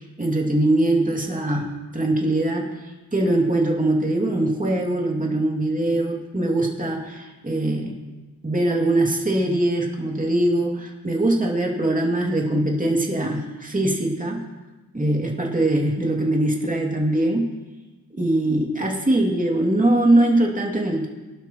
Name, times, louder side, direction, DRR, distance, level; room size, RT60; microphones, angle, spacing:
voice 1, 0.0-2.8 3.1-8.0 8.4-14.4 14.9-17.5 18.1-21.1, right 1 dB, 20° right, -1 dB, 2.5 m, -22 dB
24.5 x 12.0 x 3.0 m, 1.2 s
wide cardioid pair, 125°, 36 cm